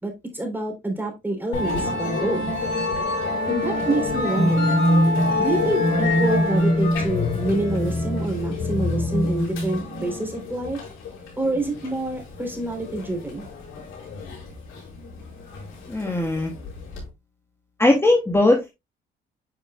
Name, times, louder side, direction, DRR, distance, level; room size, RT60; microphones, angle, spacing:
voice 1, 0.0-2.4 3.5-4.7 5.4-10.8 11.4-13.5, right 2 dB, 10° right, 3 dB, 3.6 m, -27 dB
Musical instrument, 1.5-17.0, left 1 dB, 90° left, 4.6 m, -25 dB
voice 2, 15.9-16.5 17.8-18.7, left 2 dB, 10° left, 2 dB, 1.5 m, -19 dB
9.7 x 5.5 x 2.3 m, 0.21 s
cardioid pair, 90°, 20 cm